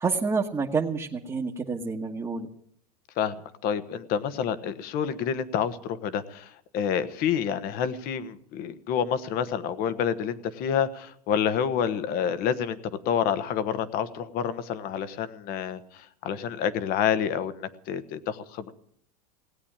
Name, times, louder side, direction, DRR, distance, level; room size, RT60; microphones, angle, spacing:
voice 1, 0.0-2.5, right 4 dB, 15° right, -2 dB, 1.4 m, -28 dB
voice 2, 3.6-12.8 13.0-18.7, left 8 dB, 50° left, 13 dB, 1.3 m, -28 dB
18.0 x 8.5 x 8.8 m, 0.67 s
hypercardioid pair, 110°, 20 cm